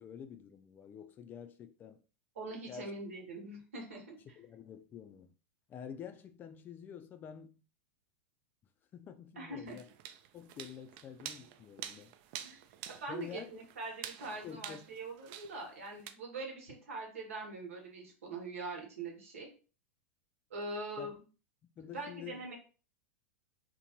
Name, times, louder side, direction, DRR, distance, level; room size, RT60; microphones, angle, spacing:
voice 1, 0.0-2.0 2.7-2.9 4.2-5.3 5.7-7.6 8.9-9.8 10.3-12.1 13.1-13.5 14.4-14.8 21.0-21.1 21.8-22.5, left 8 dB, 25° left, 0.4 m, -48 dB
voice 2, 2.4-4.2 9.4-9.8 12.4-12.6 12.9-19.5 20.5-21.2 21.9-22.5, right 2 dB, 85° right, 1.1 m, -43 dB
sound 1, 9.7-16.1, right 10 dB, 50° right, 0.3 m, -48 dB
2.7 x 2.2 x 2.9 m
hypercardioid pair, 115°, 7 cm